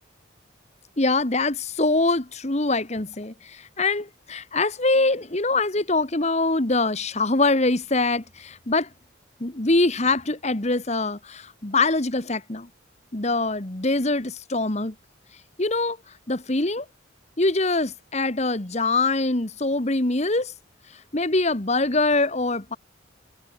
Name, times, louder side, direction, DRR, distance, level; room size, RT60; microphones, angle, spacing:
voice 1, 1.0-8.9 9.4-12.7 13.1-14.9 15.6-16.0 16.3-16.8 17.4-20.5 20.9-22.8, left 2 dB, 35° left, 1.5 m, -23 dB
head